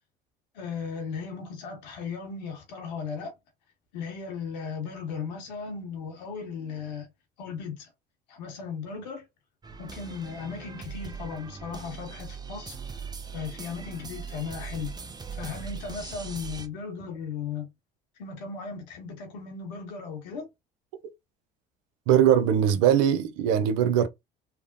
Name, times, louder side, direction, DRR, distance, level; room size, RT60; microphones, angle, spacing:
voice 1, 0.5-3.3 3.9-7.1 7.4-7.9 8.3-9.2 9.8-12.8 13.3-14.9 15.3-17.7 18.2-20.5, left 5 dB, 85° left, 1.1 m, -36 dB
sound 1, 9.6-16.7, right 5 dB, 20° right, 0.6 m, -40 dB
voice 2, 22.1-24.1, right 9 dB, 80° right, 0.5 m, -21 dB
3.3 x 2.1 x 2.5 m
hypercardioid pair, 75°, 21 cm